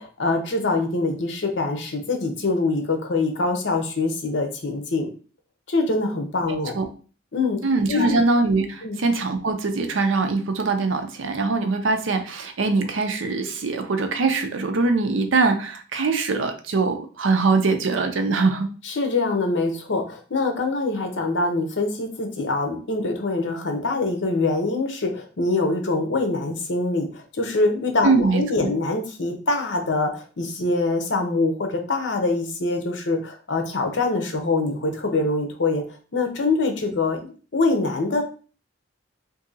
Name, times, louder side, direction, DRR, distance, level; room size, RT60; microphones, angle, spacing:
voice 1, 0.0-5.1 5.7-6.7 7.3-7.6 7.9-8.2 8.8-9.0 18.8-35.8 36.1-38.2, left 3 dB, 65° left, 4 dB, 0.7 m, -24 dB
voice 2, 7.6-18.7 28.0-28.7, right 3 dB, 80° right, 7 dB, 0.6 m, -22 dB
2.7 x 2.6 x 3.8 m, 0.38 s
head